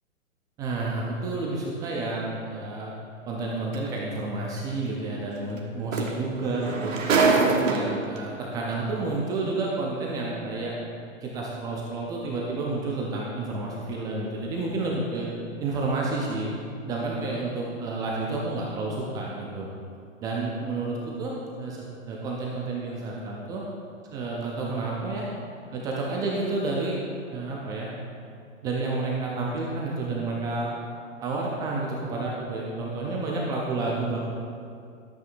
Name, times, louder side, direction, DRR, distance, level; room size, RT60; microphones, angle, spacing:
voice 1, 0.6-2.9 3.3-6.9 7.5-10.7 11.2-15.3 15.6-16.5 16.8-19.7 20.2-23.6 24.1-25.3 25.7-27.0 27.3-27.9 28.6-30.7 31.2-34.2, right 3 dB, 10° right, -3 dB, 0.3 m, -30 dB
sound 1, 3.7-3.9 5.6-5.7 5.9-8.2 9.1-9.2, right 4 dB, 70° right, 1.3 m, -24 dB
12.5 x 8.2 x 2.5 m, 2.4 s
hypercardioid pair, 115°, 40 cm